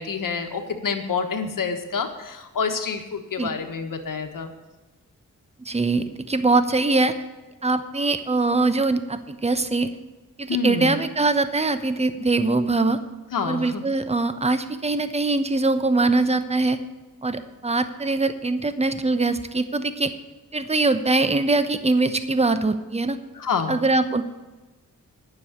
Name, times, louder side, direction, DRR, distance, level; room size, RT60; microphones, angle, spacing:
voice 1, 0.0-4.5 10.5-11.0 13.3-13.8 23.3-23.8, left 5 dB, 70° left, 5 dB, 1.5 m, -27 dB
voice 2, 5.6-7.1 7.6-9.9 10.4-13.0 13.4-16.8 17.2-20.1 20.5-23.2 23.7-24.2, right 3 dB, 20° right, 10 dB, 0.9 m, -22 dB
9.6 x 7.0 x 8.3 m, 1.2 s
cardioid pair, 70°, 33 cm